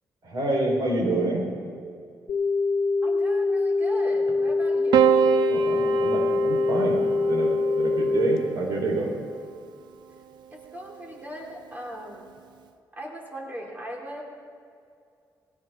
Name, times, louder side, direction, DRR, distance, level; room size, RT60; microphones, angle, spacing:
voice 1, 0.2-1.4 5.5-7.0 7.3-9.1, right 2 dB, 65° right, -1 dB, 4.8 m, -27 dB
sound 1, 2.3-8.4, left 3 dB, 60° left, 1.2 m, -24 dB
voice 2, 3.0-5.3 10.5-12.3 12.9-14.2, equal, 25° right, -1 dB, 3.4 m, -39 dB
Piano, 4.9-9.4 10.6-11.3, right 10 dB, 80° right, 0.8 m, -26 dB
20.5 x 17.5 x 3.9 m, 2.3 s
cardioid pair, 125°, 7 cm